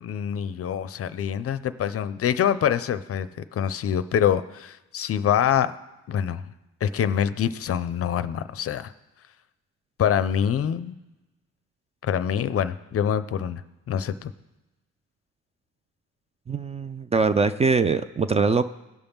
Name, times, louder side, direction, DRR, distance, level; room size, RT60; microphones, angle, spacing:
voice 1, 0.0-5.7 6.1-6.4 6.8-8.9 10.0-11.0 12.0-13.6 13.9-14.3, left 9 dB, 50° left, 13 dB, 0.5 m, -25 dB
voice 2, 16.5-18.6, right 4 dB, 20° right, 11 dB, 0.3 m, -22 dB
17.0 x 5.6 x 3.5 m, 1.0 s
cardioid pair, 90°, 30 cm